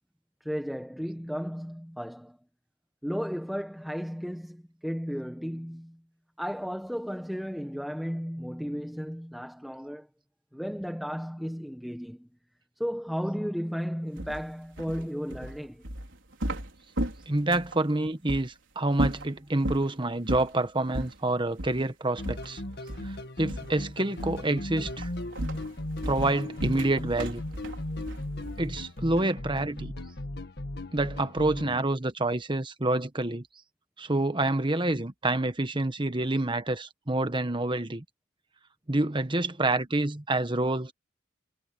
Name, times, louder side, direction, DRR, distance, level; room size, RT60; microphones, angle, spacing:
voice 1, 0.4-2.4 3.0-6.0 6.4-10.1 10.5-12.3 12.8-15.8, equal, ahead, 1.4 m, -34 dB
sound 1, 14.2-17.8 18.3-18.5 18.9-19.9 20.3-20.6 20.9-21.2 21.6-21.8 22.2-23.2 23.5-23.8 24.2-24.5 24.8-28.8, right 1 dB, 65° right, 5.4 m, -35 dB
voice 2, 17.3-22.6 23.0-23.1 23.4-25.1 26.1-27.4 28.6-29.9 30.9-33.5 34.0-38.0 38.9-40.9, right 2 dB, 25° right, 1.3 m, -27 dB
sound 2, 22.2-31.8, left 1 dB, 55° left, 1.7 m, -37 dB
head